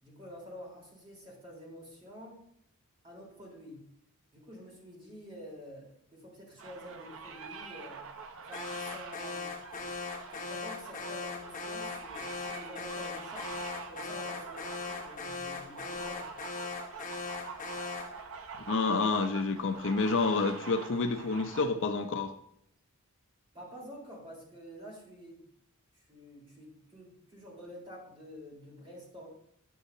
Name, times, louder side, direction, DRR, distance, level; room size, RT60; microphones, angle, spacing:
voice 1, 0.0-2.4 3.0-3.8 4.3-8.0 8.4-10.0 10.3-13.5 13.9-16.3 23.5-25.5 25.9-29.3, equal, 25° right, -4 dB, 3.8 m, -49 dB
sound 1, 6.6-21.7, right 5 dB, 65° right, 0.9 m, -45 dB
Alarm, 8.5-18.2, left 4 dB, 35° left, 1.1 m, -39 dB
voice 2, 18.7-22.3, left 4 dB, 60° left, 8 dB, 0.6 m, -29 dB
10.0 x 8.5 x 2.7 m, 0.73 s
head